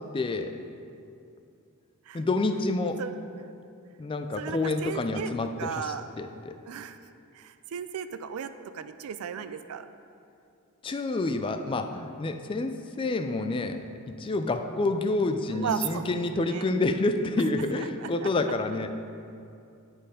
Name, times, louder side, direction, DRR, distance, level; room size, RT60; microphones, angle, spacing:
voice 1, 0.1-0.5 2.1-3.0 4.0-6.6 10.8-18.9, left 2 dB, 25° left, 7 dB, 0.3 m, -28 dB
voice 2, 4.4-5.3 5.6-6.0 6.7-7.0 7.3-9.9 15.5-16.7 17.8-18.3, right 7 dB, 70° right, 11 dB, 0.4 m, -35 dB
9.2 x 4.5 x 5.0 m, 2.5 s
head